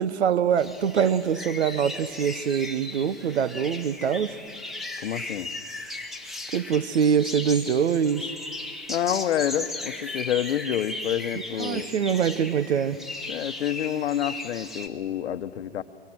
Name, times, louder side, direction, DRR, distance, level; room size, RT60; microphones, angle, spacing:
voice 1, 0.0-4.4 6.5-8.3 11.6-13.0, right 7 dB, 80° right, 16 dB, 1.0 m, -24 dB
sound 1, 0.6-14.9, left 2 dB, ahead, 1.5 m, -37 dB
voice 2, 5.0-5.5 8.9-11.9 13.3-15.8, left 10 dB, 80° left, 12 dB, 1.0 m, -28 dB
24.0 x 22.5 x 6.2 m, 2.2 s
hypercardioid pair, 125°, 32 cm